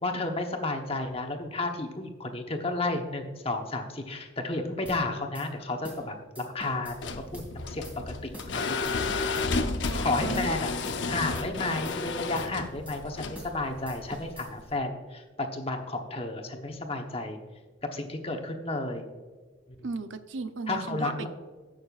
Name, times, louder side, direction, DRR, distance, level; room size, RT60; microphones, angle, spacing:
voice 1, 0.0-8.8 10.0-10.7 11.1-17.4 17.9-19.1 20.7-21.3, left 2 dB, 30° left, 4 dB, 1.0 m, -32 dB
sound 1, 4.9-5.0 5.3-5.5 5.8-6.1 6.4-7.0 7.3-7.5 7.8-8.0 8.3-8.6 8.8-9.5 9.8-10.0 10.3-10.5 10.8-11.1 11.3-12.0 12.4-12.5 12.9-13.0 13.3-13.6 13.9-14.5, equal, 10° right, 2.3 m, -45 dB
sound 2, 6.9-14.7, left 3 dB, 65° left, 0.7 m, -32 dB
voice 2, 9.5-10.6 19.8-21.3, right 4 dB, 70° right, 10 dB, 0.6 m, -36 dB
16.0 x 6.5 x 2.5 m, 1.4 s
head